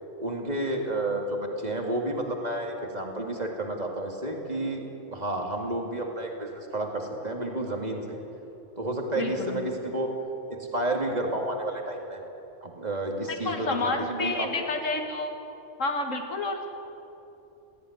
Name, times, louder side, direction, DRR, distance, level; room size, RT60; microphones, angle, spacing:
voice 1, 0.2-8.2 8.8-10.1 10.5-12.2 12.6-14.5, right 1 dB, 35° right, 1 dB, 2.6 m, -31 dB
voice 2, 9.2-9.7 13.4-15.4 15.8-16.7, left 3 dB, 90° left, 4 dB, 2.0 m, -30 dB
18.0 x 15.5 x 9.6 m, 2.9 s
omnidirectional pair, 1.3 m